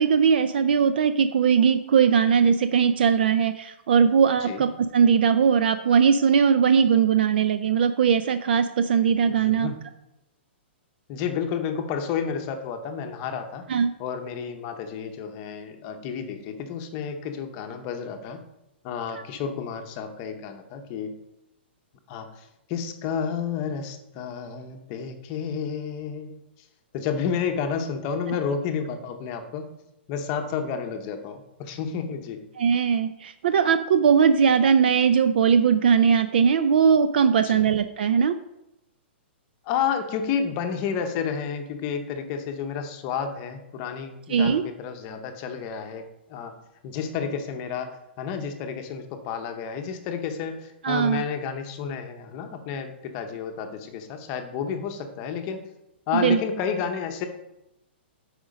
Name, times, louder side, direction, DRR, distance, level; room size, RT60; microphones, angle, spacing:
voice 1, 0.0-9.7 13.7-13.9 32.6-38.4 44.3-44.6 50.8-51.2 56.1-56.4, right 7 dB, 55° right, 11 dB, 0.4 m, -20 dB
voice 2, 9.4-9.8 11.1-13.6 14.0-18.4 18.8-21.2 22.1-26.4 26.9-29.7 30.1-32.4 37.4-37.7 39.7-46.6 46.8-55.7 56.1-57.3, left 7 dB, 25° left, 6 dB, 0.8 m, -31 dB
8.7 x 5.1 x 5.2 m, 0.88 s
hypercardioid pair, 175°, 6 cm